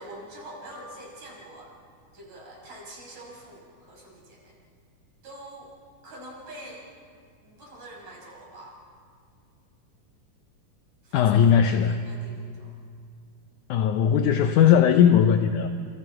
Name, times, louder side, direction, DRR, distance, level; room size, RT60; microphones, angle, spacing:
voice 1, 0.0-1.7 2.1-4.6 5.2-5.7 6.0-6.8 7.4-8.8 11.0-12.8, right 1 dB, 55° right, -3 dB, 7.1 m, -45 dB
voice 2, 11.1-12.0 13.7-15.7, left 8 dB, 75° left, 7 dB, 2.1 m, -19 dB
29.5 x 28.0 x 4.8 m, 2.3 s
omnidirectional pair, 3.9 m